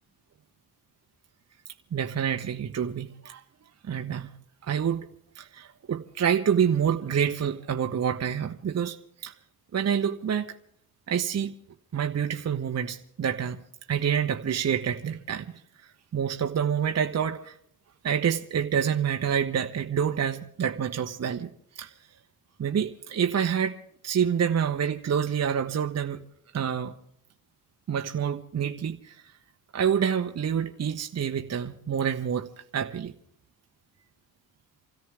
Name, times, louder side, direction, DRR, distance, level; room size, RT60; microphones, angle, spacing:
voice 1, 1.9-3.4 3.8-4.3 4.6-5.1 5.3-9.0 9.2-9.3 9.7-10.5 11.1-11.5 11.9-13.6 13.9-15.5 16.1-17.6 18.0-21.5 21.8-21.9 22.6-23.8 24.0-26.2 26.5-27.0 27.9-29.2 29.7-33.1, right 8 dB, 40° right, 1.1 m, -27 dB
28.0 x 13.5 x 3.5 m
supercardioid pair, 60°, 41 cm